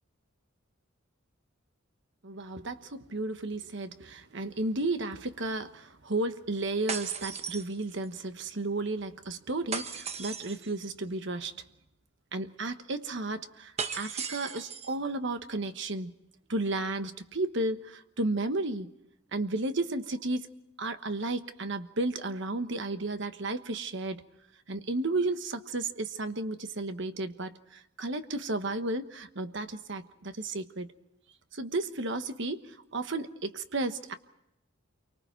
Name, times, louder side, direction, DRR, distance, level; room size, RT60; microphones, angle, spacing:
voice 1, 2.2-11.6 12.3-16.1 16.5-18.9 19.3-20.5 20.8-24.2 24.7-30.9 31.5-34.1, right 2 dB, 60° right, 9 dB, 1.2 m, -33 dB
sound 1, 6.9-8.2 9.7-10.7 13.8-15.0, right 6 dB, 30° right, 1.1 m, -37 dB
28.5 x 24.0 x 4.5 m, 0.82 s
head